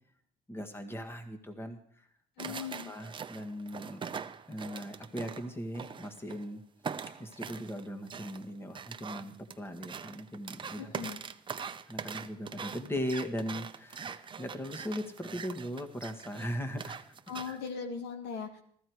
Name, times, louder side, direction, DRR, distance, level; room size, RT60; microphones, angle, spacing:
voice 1, 0.5-2.1 2.5-4.0 4.5-6.6 7.2-11.1 11.5-17.0 17.4-17.6, equal, 15° left, 5 dB, 1.7 m, -39 dB
voice 2, 2.4-2.9 10.8-11.2 17.3-18.6, left 6 dB, 90° left, 6 dB, 2.0 m, -39 dB
sound 1, 2.4-6.5 6.8-17.7, right 6 dB, 30° right, 0.8 m, -42 dB
14.5 x 14.0 x 4.7 m, 0.64 s
cardioid pair, 110°, 17 cm